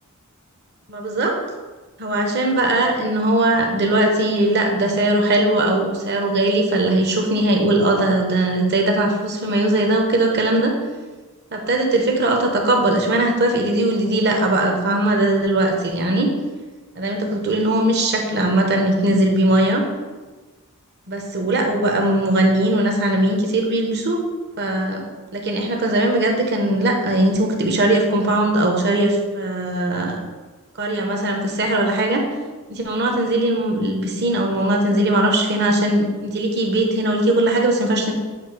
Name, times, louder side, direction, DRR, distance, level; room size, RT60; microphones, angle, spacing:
voice 1, 0.9-1.4 2.0-10.7 11.5-16.3 16.9-19.8 21.1-24.2 24.6-25.0 25.3-30.2 30.8-32.2 32.7-38.1, right 1 dB, 50° right, 2 dB, 1.0 m, -19 dB
7.8 x 2.8 x 4.7 m, 1.3 s
head